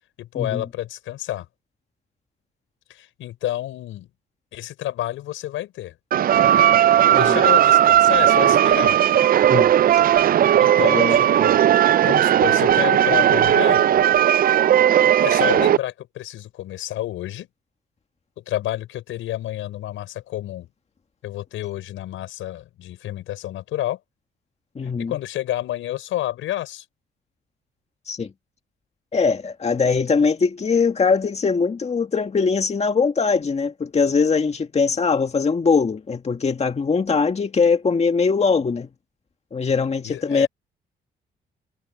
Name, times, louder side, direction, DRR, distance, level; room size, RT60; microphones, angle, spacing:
voice 1, 0.2-1.5 2.9-4.1 4.5-5.9 7.1-9.0 10.6-11.6 12.0-13.8 15.2-17.5 18.4-20.7 21.2-24.0 24.8-26.8 40.0-40.5, left 13 dB, 85° left, 5.9 m, -29 dB
sound 1, 6.1-15.8, right 11 dB, 45° right, 0.4 m, -16 dB
voice 2, 10.8-11.2 24.8-25.1 28.1-28.3 29.1-38.9 39.5-40.5, left 5 dB, 35° left, 2.0 m, -21 dB
cardioid pair, 90°, 20 cm